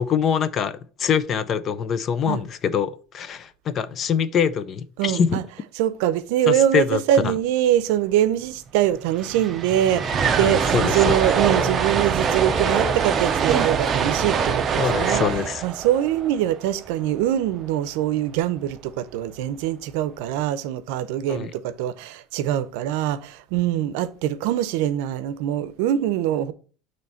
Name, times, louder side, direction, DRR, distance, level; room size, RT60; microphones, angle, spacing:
voice 1, 0.0-5.4 6.5-7.3 10.1-11.2 14.8-15.6 21.3-21.5, left 7 dB, 30° left, 0.4 m, -24 dB
voice 2, 5.0-5.4 5.8-15.2 15.6-26.5, right 11 dB, 75° right, 0.6 m, -23 dB
sound 1, 8.7-8.8 8.9-17.2, right 6 dB, 25° right, 0.6 m, -24 dB
9.4 x 3.2 x 4.3 m
cardioid pair, 160°, 0 cm